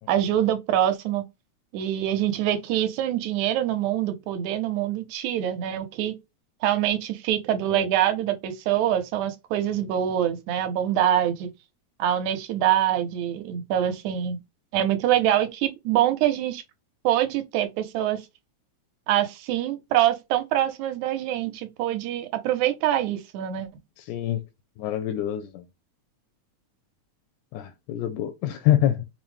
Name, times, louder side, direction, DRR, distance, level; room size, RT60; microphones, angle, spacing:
voice 1, 0.1-1.2 1.7-6.2 6.6-11.5 12.0-14.4 14.7-16.6 17.0-18.2 19.1-23.7, right 11 dB, 80° right, 2.0 m, -25 dB
voice 2, 24.1-24.4 24.8-25.6 27.5-29.0, left 12 dB, 85° left, 2.0 m, -25 dB
5.5 x 2.0 x 3.1 m
omnidirectional pair, 3.4 m